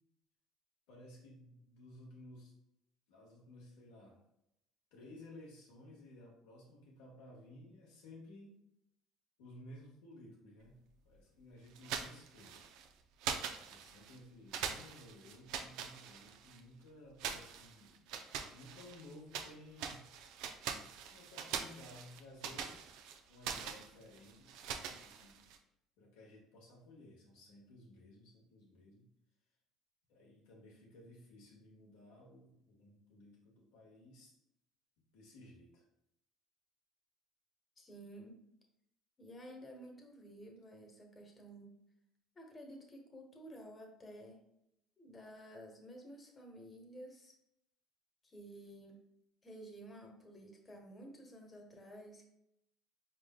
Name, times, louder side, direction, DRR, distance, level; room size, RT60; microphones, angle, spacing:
voice 1, 0.9-2.5 3.1-4.2 4.9-8.6 9.4-12.7 13.7-18.0 18.5-20.1 21.1-22.9 23.3-24.5 24.8-25.5 26.0-29.1 30.1-34.4 35.1-35.8, left 1 dB, 85° left, -2 dB, 1.5 m, -56 dB
sound 1, 11.8-12.9 13.2-14.2 14.5-16.6 17.2-19.5 19.8-25.6, right 7 dB, 75° right, 0.4 m, -43 dB
voice 2, 37.8-38.4 39.2-41.8 42.3-44.4 45.0-47.3 48.2-49.0 49.4-52.3, right 1 dB, 25° left, 1 dB, 1.2 m, -52 dB
4.6 x 3.7 x 2.2 m, 0.81 s
supercardioid pair, 85°, 0 cm